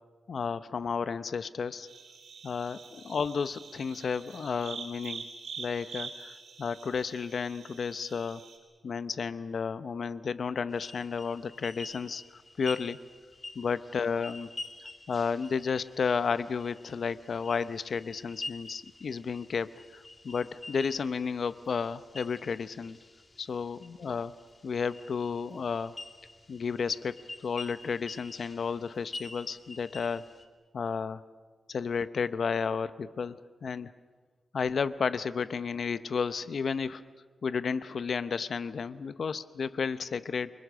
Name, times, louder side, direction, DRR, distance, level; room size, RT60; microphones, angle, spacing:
voice 1, 0.3-1.9 2.4-5.2 5.6-6.3 6.6-8.4 8.8-12.2 12.6-13.0 13.5-14.5 15.1-23.0 23.4-24.3 24.6-25.9 26.5-30.2 30.7-31.2 31.7-33.9 34.5-37.0 37.4-40.5, left 5 dB, 60° left, 14 dB, 0.8 m, -32 dB
sound 1, 1.9-8.6, right 5 dB, 90° right, 5.9 m, -45 dB
sound 2, 10.7-30.5, left 2 dB, 30° left, 2.3 m, -47 dB
28.5 x 24.0 x 6.3 m, 1.5 s
wide cardioid pair, 115°, 0 cm